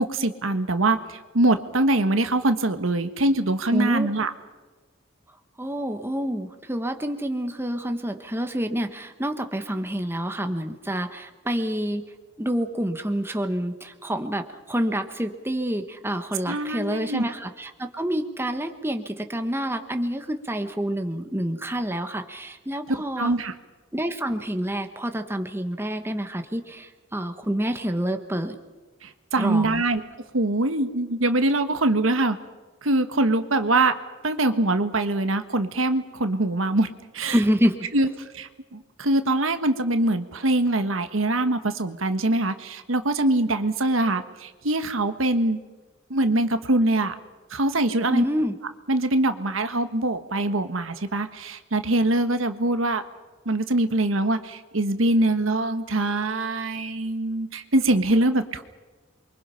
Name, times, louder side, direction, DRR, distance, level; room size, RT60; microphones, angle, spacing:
voice 1, 0.0-4.3 16.5-17.2 23.2-23.5 29.0-30.0 30.3-32.4 32.8-33.9 34.2-36.9 37.1-37.4 37.9-38.1 38.3-45.6 46.1-47.1 47.5-48.2 48.9-53.0 53.4-58.6, right 2 dB, 75° right, 9 dB, 1.4 m, -23 dB
voice 2, 3.7-4.1 5.6-12.0 12.4-23.3 23.9-28.6 29.4-29.8 37.3-37.8 48.1-48.5, equal, 10° right, 6 dB, 1.3 m, -27 dB
28.5 x 23.5 x 5.7 m, 1.2 s
head